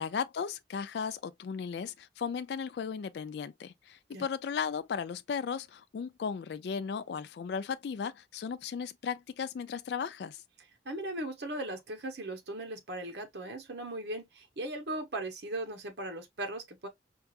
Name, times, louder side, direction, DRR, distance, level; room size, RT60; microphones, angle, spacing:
voice 1, 0.0-10.4, left 6 dB, 65° left, 0.3 m, -36 dB
voice 2, 10.8-16.9, right 1 dB, 65° right, 0.9 m, -38 dB
4.5 x 2.4 x 2.4 m
head